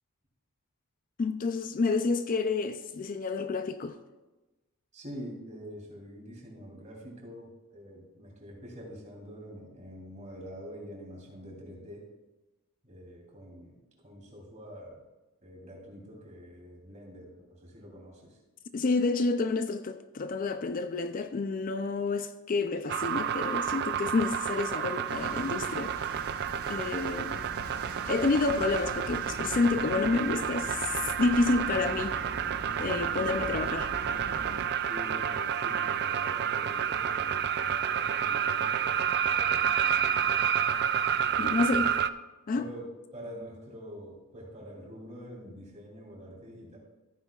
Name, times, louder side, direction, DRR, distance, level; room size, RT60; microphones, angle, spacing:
voice 1, 1.2-4.0 18.7-26.2 26.7-27.4 28.1-32.2 32.8-33.9 41.4-41.9 42.5-42.7, left 3 dB, 40° left, 0.4 m, -29 dB
voice 2, 4.9-12.0 12.8-13.8 14.0-15.0 15.4-18.4 34.9-40.5 41.2-41.9 42.5-46.8, equal, 30° right, 3.1 m, -46 dB
sound 1, 22.9-42.1, right 8 dB, 50° right, 0.4 m, -30 dB
sound 2, 25.1-34.7, right 2 dB, 75° right, 0.9 m, -42 dB
14.5 x 9.4 x 2.4 m
head